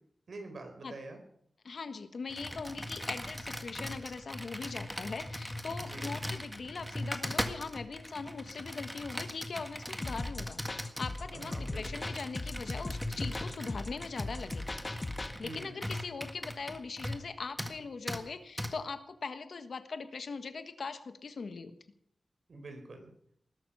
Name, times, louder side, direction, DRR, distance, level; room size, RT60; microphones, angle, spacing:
voice 1, 0.3-1.2 5.8-6.1 11.3-12.0 15.4-15.9 22.5-23.1, right 2 dB, 60° right, 5 dB, 4.3 m, -45 dB
voice 2, 1.6-14.8 15.4-21.7, left 4 dB, 70° left, 9 dB, 1.4 m, -41 dB
Computer keyboard, 2.3-17.3 17.6-17.8 18.1-18.2 18.6-18.7, equal, ahead, 1.7 m, -40 dB
sound 1, 10.0-15.3, left 2 dB, 25° left, 1.4 m, -39 dB
20.0 x 12.0 x 5.6 m, 0.70 s
wide cardioid pair, 135°, 0 cm